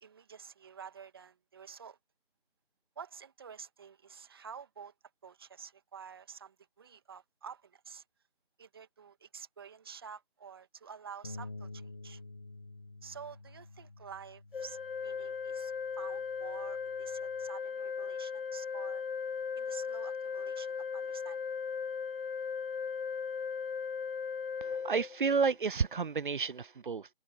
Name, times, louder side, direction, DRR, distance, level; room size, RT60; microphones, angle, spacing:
voice 1, 0.0-2.0 3.0-4.9 5.2-8.0 8.6-12.2 13.0-19.0 19.6-21.4, right 7 dB, 25° right, 2.3 m, -49 dB
sound 1, 11.2-17.5, left 2 dB, 20° left, 0.9 m, -50 dB
Organ, 14.5-25.6, left 6 dB, 65° left, 0.7 m, -37 dB
voice 2, 24.6-27.1, right 5 dB, 55° right, 0.5 m, -31 dB
figure-of-eight pair, 170°, 31 cm